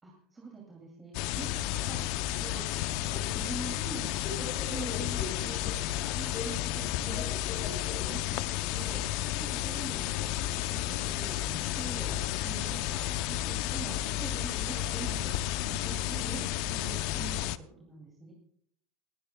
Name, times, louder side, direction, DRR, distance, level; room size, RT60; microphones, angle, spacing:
voice 1, 0.0-2.6 2.9-17.5 17.8-18.3, right 3 dB, 15° right, -1 dB, 2.5 m, -45 dB
sound 1, 1.1-17.6, left 13 dB, 55° left, 0.5 m, -32 dB
Subway metro underground, 3.1-12.8, left 5 dB, 30° left, 7.1 m, -46 dB
30.0 x 10.0 x 2.2 m, 0.66 s
supercardioid pair, 160°, 0 cm